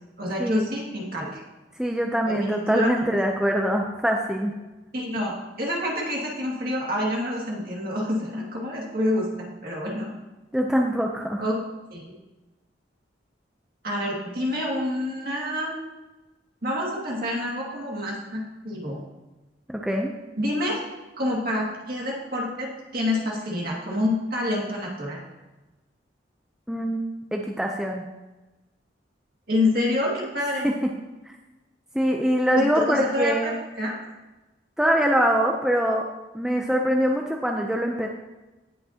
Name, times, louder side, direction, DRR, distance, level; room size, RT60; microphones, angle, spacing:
voice 1, 0.2-1.4 2.2-2.9 4.9-10.1 11.4-11.6 11.9-12.1 13.8-15.8 16.6-19.0 20.4-20.8 21.2-25.2 29.5-30.7 32.5-33.5 33.8-34.0, left 1 dB, 50° right, -3 dB, 2.2 m, -27 dB
voice 2, 1.8-4.5 10.5-11.5 19.7-20.1 26.7-27.0 27.3-28.1 30.6-30.7 31.9-33.5 34.8-36.1 36.3-38.1, equal, 5° right, 1 dB, 0.5 m, -23 dB
17.0 x 5.8 x 2.8 m, 1.1 s
head